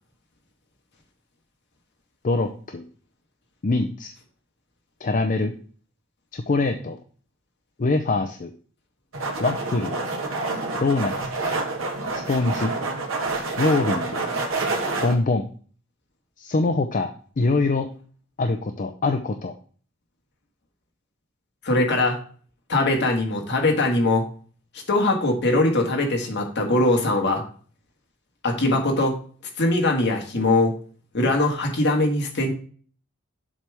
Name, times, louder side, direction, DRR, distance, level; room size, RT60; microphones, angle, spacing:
voice 1, 2.2-2.8 3.6-4.1 5.0-5.5 6.3-7.0 7.8-8.5 9.4-10.0 10.8-11.3 12.1-12.7 13.6-14.2 15.0-15.4 16.4-17.1 17.4-17.9 18.4-19.5, left 3 dB, 40° left, 6 dB, 0.5 m, -23 dB
sound 1, 9.1-15.1, right 3 dB, 75° right, 1.5 m, -27 dB
voice 2, 21.6-22.2 22.7-24.2 24.9-27.4 28.4-29.2 29.6-30.7 31.1-32.5, left 2 dB, 60° left, 2 dB, 1.7 m, -21 dB
7.3 x 3.4 x 6.0 m, 0.43 s
head